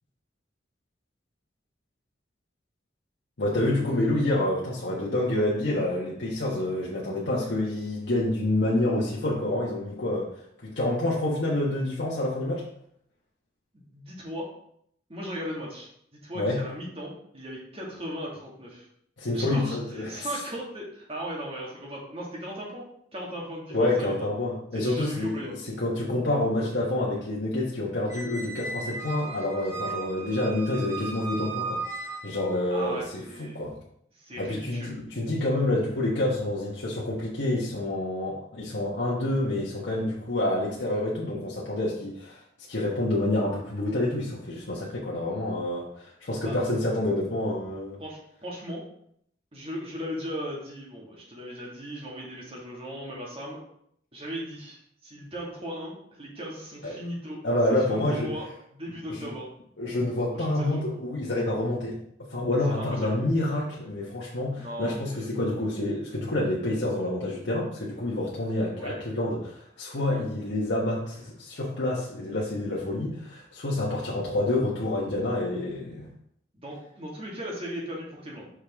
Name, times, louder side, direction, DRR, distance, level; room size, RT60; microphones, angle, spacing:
voice 1, 3.4-10.3 10.6-12.6 16.3-16.6 19.2-20.3 23.7-33.7 34.4-42.4 42.7-48.0 56.8-57.0 57.4-58.3 59.1-59.3 59.8-62.0 62.3-76.1, left 1 dB, 75° left, -5 dB, 1.2 m, -28 dB
voice 2, 13.7-14.5 15.1-18.9 19.3-22.8 23.1-24.1 24.7-25.5 32.7-33.7 34.1-35.0 46.4-46.6 48.0-48.8 49.5-53.6 54.1-57.4 57.9-58.5 58.7-59.5 60.3-60.8 62.8-63.1 64.6-65.3 68.8-68.9 76.5-78.5, equal, 35° right, -3 dB, 1.9 m, -37 dB
Squeak, 28.1-32.6, right 3 dB, 15° right, 1.6 m, -36 dB
6.3 x 5.1 x 3.6 m, 0.70 s
head